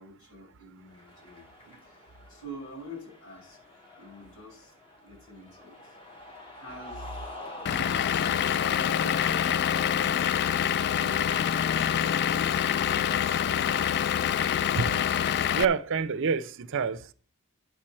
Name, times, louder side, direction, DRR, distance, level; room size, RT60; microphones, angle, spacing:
voice 1, 0.0-1.5 1.8-3.6 4.0-4.7 5.0-6.0 6.5-7.3, equal, 85° left, 6.0 m, -47 dB
Cheering, 0.8-14.3, left 2 dB, 25° left, 1.9 m, -49 dB
Vehicle / Engine, 7.7-15.7, left 9 dB, 50° left, 0.3 m, -26 dB
voice 2, 15.5-17.1, right 6 dB, 60° right, 0.6 m, -27 dB
9.4 x 4.4 x 7.4 m
head